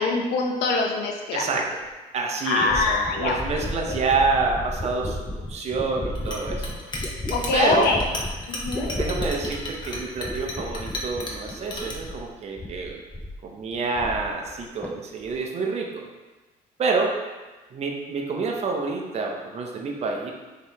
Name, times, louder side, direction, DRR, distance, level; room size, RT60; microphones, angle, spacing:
voice 1, 0.0-1.4 2.5-3.9 7.3-8.0 8.5-8.9, left 3 dB, 75° left, 2 dB, 0.7 m, -24 dB
voice 2, 1.3-1.8 2.1-5.2 5.5-6.8 7.5-8.0 9.0-13.0 13.4-16.1 16.8-17.2 17.7-20.3, right 4 dB, 40° right, 1 dB, 0.6 m, -27 dB
sound 1, 1.9-2.0 2.6-12.3 12.6-13.4 13.7-14.6 14.8-15.4, left 1 dB, 10° left, 0.4 m, -33 dB
Chink clink, 6.2-11.9, left 2 dB, 25° left, 0.8 m, -35 dB
5.2 x 2.8 x 3.0 m, 1.2 s
cardioid pair, 110°, 17 cm